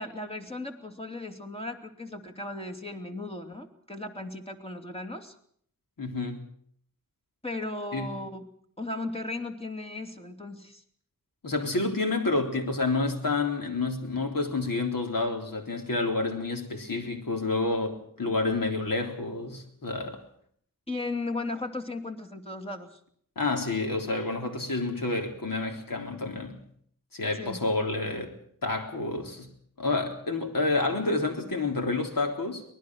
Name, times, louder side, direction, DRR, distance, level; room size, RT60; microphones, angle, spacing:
voice 1, 0.0-5.3 7.4-8.5 8.8-10.8 20.9-23.0 27.3-27.7, left 2 dB, 20° left, 3.0 m, -36 dB
voice 2, 6.0-6.4 7.9-8.1 11.4-20.2 23.4-26.6 27.1-28.3 28.6-29.5 29.8-32.6, left 3 dB, 90° left, 3.7 m, -29 dB
24.0 x 19.5 x 6.4 m
wide cardioid pair, 80°, 33 cm